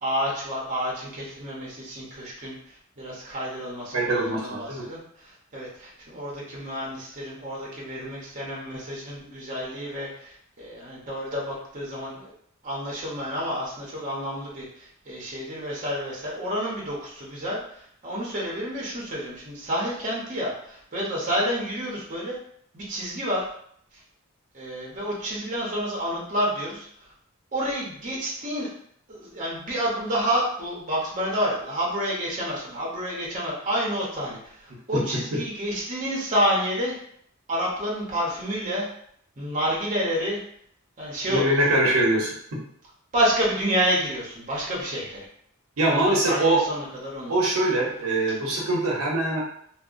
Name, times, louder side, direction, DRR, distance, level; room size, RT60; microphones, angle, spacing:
voice 1, 0.0-12.3 12.6-22.4 22.7-23.5 24.5-26.9 27.5-28.7 29.1-36.9 37.5-38.9 39.4-40.4 41.0-41.8 43.1-45.3 45.9-47.4, equal, 35° right, -5 dB, 0.7 m, -29 dB
voice 2, 3.9-4.8 34.9-35.0 35.3-35.4 41.3-42.6 45.8-46.6 47.3-49.4, right 1 dB, 85° right, -3 dB, 0.7 m, -23 dB
2.7 x 2.0 x 2.4 m, 0.66 s
head